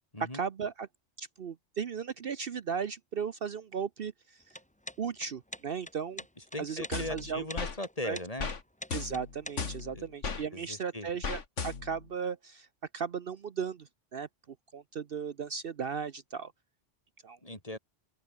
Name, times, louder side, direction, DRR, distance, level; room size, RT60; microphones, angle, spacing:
voice 1, 0.2-0.9 1.2-4.4 5.0-6.2 6.6-7.4 8.0-8.2 8.9-12.7 12.9-14.3 14.7-16.5 17.2-17.4, right 6 dB, 55° right, 1.0 m, -36 dB
sound 1, 4.4-9.8, left 1 dB, 5° left, 1.2 m, -45 dB
voice 2, 6.5-8.5 9.9-10.1 10.5-11.1 17.4-17.8, left 1 dB, 30° left, 4.5 m, -38 dB
sound 2, 6.9-7.8 8.4-8.6 8.9-10.4 11.2-12.1, left 5 dB, 85° left, 2.3 m, -36 dB
open air
omnidirectional pair, 1.2 m